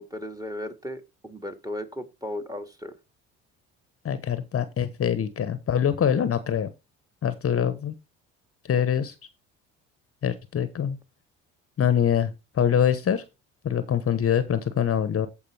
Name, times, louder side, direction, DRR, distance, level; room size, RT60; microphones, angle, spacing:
voice 1, 0.0-2.9, left 1 dB, 10° right, 2.0 m, -36 dB
voice 2, 4.0-6.7 7.2-7.9 8.7-9.1 10.2-11.0 11.8-12.3 12.5-13.2 13.6-15.3, left 8 dB, 40° left, 1.0 m, -24 dB
14.5 x 4.9 x 3.3 m
hypercardioid pair, 65°, 36 cm